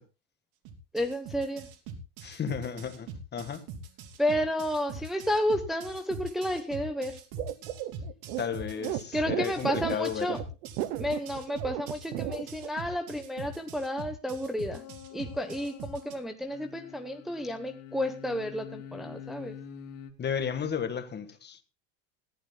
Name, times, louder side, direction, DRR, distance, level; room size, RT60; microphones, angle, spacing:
sound 1, 0.7-16.2, right 5 dB, 60° right, 3.3 m, -42 dB
voice 1, 0.9-1.7 4.2-7.2 9.1-10.4 11.0-14.8 15.1-19.5, equal, ahead, 0.9 m, -31 dB
voice 2, 2.2-3.6 8.4-10.4 20.2-21.6, left 8 dB, 25° left, 1.6 m, -33 dB
sound 2, 7.4-12.7, right 14 dB, 80° right, 1.1 m, -34 dB
sound 3, 14.7-16.1 16.4-20.1, left 8 dB, 60° left, 3.0 m, -46 dB
20.5 x 15.0 x 2.2 m
supercardioid pair, 135°, 40 cm